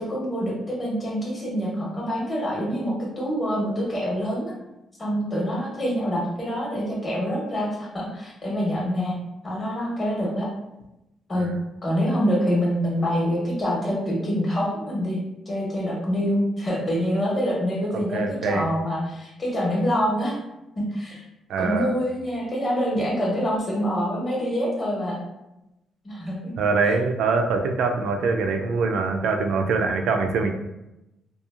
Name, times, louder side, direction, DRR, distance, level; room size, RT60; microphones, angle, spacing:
voice 1, 0.0-4.5 5.0-9.2 9.4-10.5 11.3-11.5 11.8-15.2 15.5-20.3 20.8-21.2 21.6-25.2 26.0-26.5, equal, 35° left, -3 dB, 1.1 m, -26 dB
voice 2, 17.9-18.7 21.5-21.9 26.6-30.5, right 4 dB, 80° right, 4 dB, 0.3 m, -24 dB
2.9 x 2.3 x 2.4 m, 0.92 s
cardioid pair, 90°, 0 cm